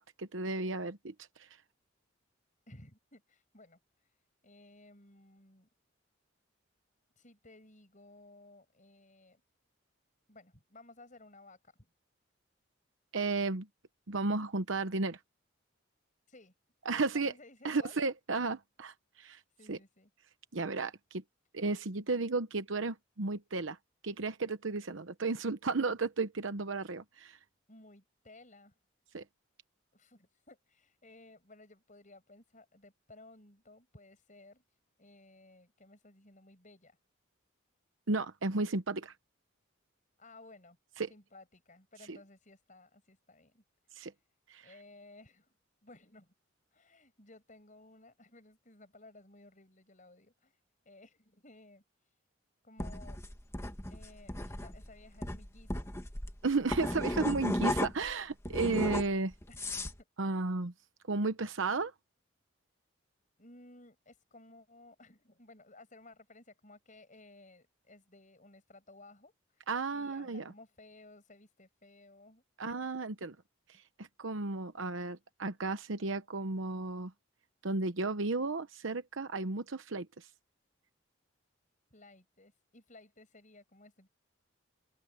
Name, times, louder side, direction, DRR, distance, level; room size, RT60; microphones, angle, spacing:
voice 1, 0.0-1.5 13.1-13.7 14.1-15.2 16.8-17.3 17.6-19.4 19.7-19.8 20.5-21.2 21.5-23.8 24.0-27.4 29.1-29.2 38.1-39.1 41.0-41.1 42.1-42.2 43.9-44.1 44.5-44.7 56.4-59.3 60.2-60.7 61.1-61.9 69.7-70.5 72.6-73.3 74.0-77.1 77.6-80.3, right 3 dB, 75° right, 1.0 m, -33 dB
voice 2, 2.7-5.7 7.1-9.4 10.3-11.7 16.3-16.5 16.9-18.0 19.5-20.1 27.7-28.7 29.9-37.0 40.2-40.8 41.1-43.6 44.0-44.2 44.6-45.5 45.8-46.3 46.7-50.6 50.8-52.2 52.6-53.2 53.9-55.9 59.5-59.6 63.4-72.7 73.2-73.3 81.9-84.1, left 2 dB, 40° left, 6.5 m, -57 dB
sound 1, 52.8-58.1 58.4-60.0, left 1 dB, 15° left, 1.7 m, -35 dB
open air
head